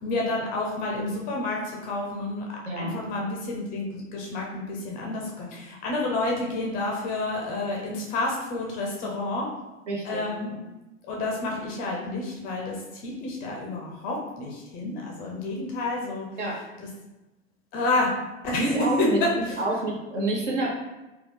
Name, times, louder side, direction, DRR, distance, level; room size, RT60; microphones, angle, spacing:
voice 1, 0.0-2.4 2.8-9.5 10.0-10.5 11.1-16.3 16.8-16.9 17.7-18.1 18.4-19.6, left 2 dB, 25° left, -1 dB, 0.4 m, -29 dB
voice 2, 9.9-10.2 10.5-10.6 16.4-16.6 18.6-20.7, right 2 dB, 65° right, -1 dB, 1.0 m, -28 dB
3.8 x 2.3 x 3.3 m, 1.1 s
figure-of-eight pair, 95°, 38 cm